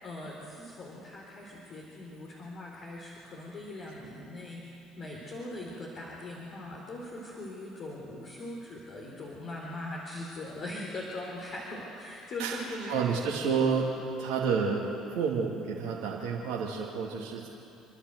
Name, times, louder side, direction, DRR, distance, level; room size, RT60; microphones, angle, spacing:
voice 1, 0.0-13.1, left 1 dB, 50° left, -3 dB, 4.0 m, -41 dB
voice 2, 12.9-13.9 14.2-14.9 15.1-17.5, right 6 dB, 65° right, -4 dB, 2.5 m, -29 dB
29.0 x 11.5 x 8.1 m, 2.8 s
hypercardioid pair, 60°, 0 cm